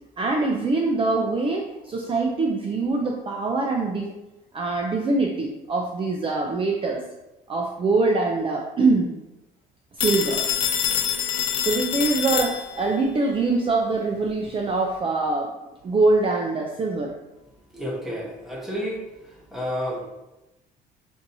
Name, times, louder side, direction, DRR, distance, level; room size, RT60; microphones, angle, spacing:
voice 1, 0.2-4.1 4.5-7.0 7.5-9.1 10.0-10.4 11.6-15.5 15.8-17.1, right 3 dB, 30° right, 0 dB, 0.5 m, -23 dB
Telephone, 10.0-13.0, left 9 dB, 85° left, 0.5 m, -26 dB
voice 2, 17.7-19.1 19.5-20.1, equal, ahead, -3 dB, 1.1 m, -30 dB
5.9 x 2.7 x 2.7 m, 0.99 s
cardioid pair, 110°, 17 cm